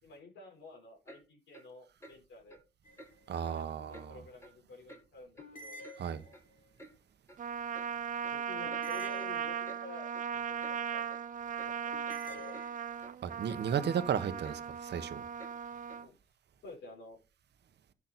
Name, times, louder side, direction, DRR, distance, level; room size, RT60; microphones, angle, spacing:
voice 1, 0.0-2.6 3.5-6.4 8.2-11.5 11.8-11.9 12.2-12.6 15.9-16.2 16.6-17.2, left 3 dB, 70° left, 4.5 m, -51 dB
Clock, 1.1-1.2 1.5-1.7 2.0-2.2 2.5-2.6 3.0-3.1 3.4-3.6 3.9-4.1 4.4-4.6 4.9-5.0 5.4-6.0 6.3-6.4 6.8-6.9 7.3-7.4 7.7-7.9 8.2-8.4 8.7-8.9 9.2-9.3 9.6-9.8 10.1-10.3 10.6-10.8 11.1-11.2 11.6-11.7 12.0-12.2 12.5-12.7 13.0-13.2 13.5-13.6 13.9-14.1 14.4-14.6 14.9-15.0 15.4-15.5 15.9-16.0, right 1 dB, 15° left, 3.3 m, -53 dB
sound 1, 2.8-3.4 5.4-6.7 8.6-10.0 11.9-13.2, left 1 dB, 45° left, 3.5 m, -50 dB
voice 2, 3.3-4.2 6.0-6.2 13.2-15.2, right 8 dB, 60° right, 1.2 m, -34 dB
Trumpet, 7.4-16.1, right 8 dB, 40° right, 0.7 m, -38 dB
10.5 x 7.2 x 4.2 m
cardioid pair, 90°, 20 cm